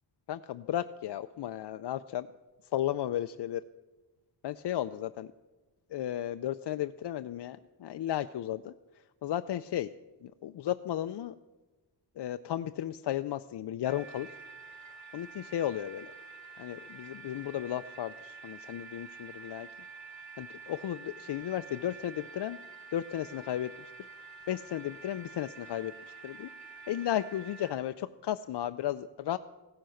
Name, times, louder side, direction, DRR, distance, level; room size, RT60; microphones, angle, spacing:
voice 1, 0.3-2.3 2.7-3.6 4.4-5.3 5.9-8.7 9.2-9.9 10.2-11.3 12.2-14.3 15.1-16.1 16.6-19.7 20.4-22.6 22.9-23.9 24.5-25.9 26.2-26.5 26.9-29.4, left 11 dB, 75° left, 9 dB, 0.5 m, -34 dB
sound 1, 13.8-27.7, right 5 dB, 45° right, 4.6 m, -48 dB
16.5 x 10.5 x 6.4 m, 1.2 s
wide cardioid pair, 150°, 41 cm